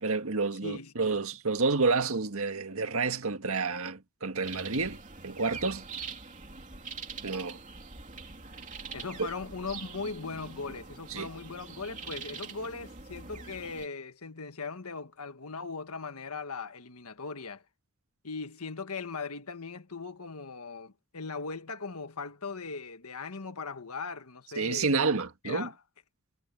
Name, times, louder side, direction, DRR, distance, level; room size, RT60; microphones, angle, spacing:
voice 1, 0.0-5.8 7.2-7.6 11.1-11.3 24.6-25.7, right 4 dB, 75° right, 1.7 m, -29 dB
voice 2, 0.6-1.2 8.9-17.6 18.2-24.9 25.4-25.8, left 4 dB, 85° left, 1.6 m, -39 dB
sound 1, 4.4-13.9, right 5 dB, 35° right, 3.1 m, -44 dB
head